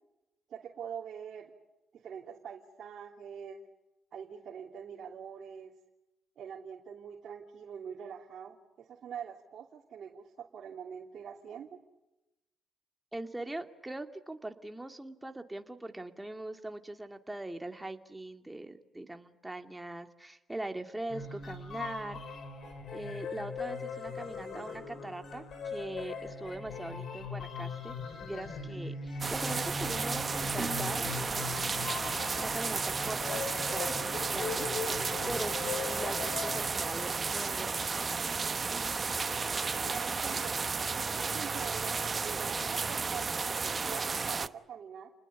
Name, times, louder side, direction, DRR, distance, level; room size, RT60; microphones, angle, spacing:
voice 1, 0.5-1.5 1.9-3.6 4.1-5.8 6.4-11.8 39.9-40.6 41.0-45.1, right 8 dB, 65° right, 0 dB, 3.1 m, -44 dB
voice 2, 13.1-22.4 22.9-27.9 28.3-31.9 32.4-34.7 35.3-38.1, right 1 dB, 10° right, 6 dB, 2.5 m, -41 dB
sound 1, 21.1-37.1, left 4 dB, 60° left, 6.3 m, -40 dB
sound 2, 29.2-44.5, right 4 dB, 35° right, 1.0 m, -33 dB
30.0 x 20.5 x 8.4 m, 0.96 s
cardioid pair, 90°, 0 cm